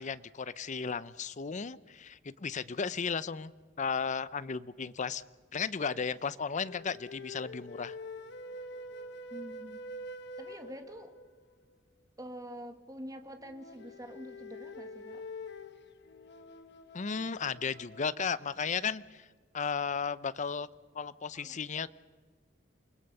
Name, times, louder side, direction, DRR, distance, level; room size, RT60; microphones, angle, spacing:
voice 1, 0.0-3.5 3.8-5.2 5.5-8.0 16.9-19.2 19.5-20.7 20.9-21.9, left 5 dB, 40° left, 17 dB, 0.6 m, -34 dB
sound 1, 6.6-11.4 13.4-18.4, left 1 dB, 65° left, 1.4 m, -46 dB
voice 2, 9.3-9.8 10.4-11.1 12.2-15.2 21.3-21.6, equal, 20° right, 7 dB, 1.8 m, -46 dB
28.5 x 20.0 x 6.7 m, 1.5 s
head